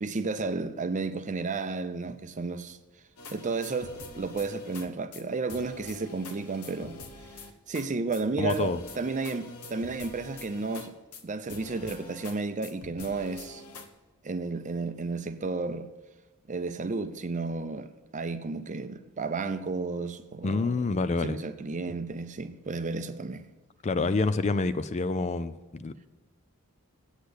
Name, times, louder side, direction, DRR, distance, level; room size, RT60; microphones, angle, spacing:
voice 1, 0.0-2.8 3.3-7.0 7.7-11.0 11.2-13.6 14.2-15.9 16.5-20.8 21.2-23.4, right 3 dB, 35° right, 0.6 m, -32 dB
sound 1, 3.2-4.9 5.1-5.2 5.5-7.9 8.1-8.2 8.5-11.2 11.5-12.4 12.6-13.9, left 3 dB, 80° left, 1.1 m, -45 dB
voice 2, 8.4-8.8 20.4-21.4 23.8-26.1, left 3 dB, 30° left, 0.4 m, -27 dB
8.5 x 8.1 x 8.0 m
head